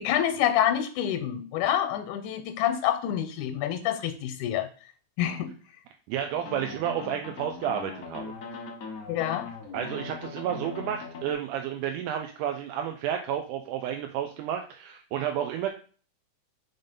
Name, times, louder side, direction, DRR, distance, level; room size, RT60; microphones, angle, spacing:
voice 1, 0.0-4.7 5.2-5.5 9.1-9.5, left 10 dB, 85° left, 8 dB, 2.1 m, -27 dB
voice 2, 6.1-8.3 9.7-15.7, right 9 dB, 85° right, 4 dB, 2.1 m, -31 dB
sound 1, 6.3-11.3, left 4 dB, 50° left, 1.1 m, -40 dB
5.4 x 3.8 x 5.3 m, 0.40 s
omnidirectional pair, 3.6 m